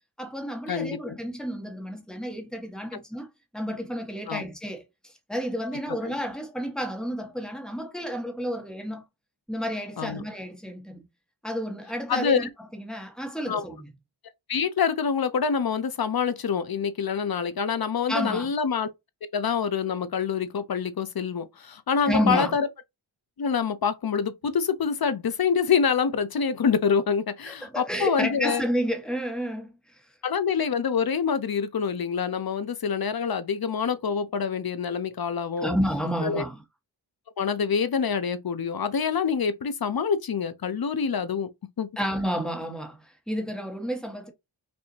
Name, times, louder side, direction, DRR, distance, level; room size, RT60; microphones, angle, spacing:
voice 1, 0.2-9.0 9.5-11.1 11.4-13.9 18.1-18.5 22.1-22.6 27.4-30.0 35.6-36.6 42.0-44.3, equal, ahead, 1.4 m, -31 dB
voice 2, 0.7-1.2 4.3-4.4 6.0-6.1 10.0-10.2 12.1-12.5 13.5-13.6 14.5-18.9 19.3-22.7 23.4-28.6 30.2-35.7 36.2-36.4 37.4-41.5 41.8-41.9, left 6 dB, 50° left, 0.7 m, -26 dB
5.3 x 2.8 x 2.8 m
wide cardioid pair, 100°, 48 cm